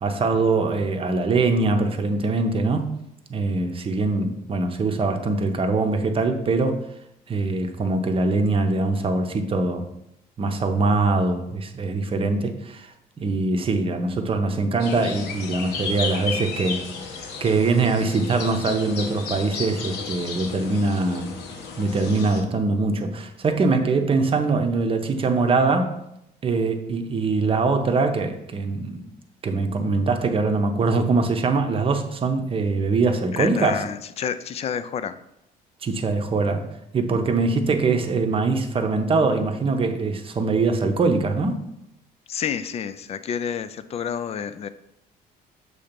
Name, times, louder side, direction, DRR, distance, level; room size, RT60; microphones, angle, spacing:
voice 1, 0.0-3.0 3.3-6.8 7.3-9.9 10.4-12.9 13.2-17.1 17.4-21.3 21.8-26.0 26.4-29.1 29.4-33.8 35.8-36.7 36.9-41.6, right 3 dB, 30° right, 6 dB, 0.7 m, -23 dB
sound 1, 14.8-22.4, left 5 dB, 80° left, 0.9 m, -33 dB
voice 2, 33.3-35.2 42.3-44.7, left 8 dB, 40° left, 13 dB, 0.4 m, -29 dB
6.3 x 2.9 x 5.1 m, 0.80 s
cardioid pair, 110°, 17 cm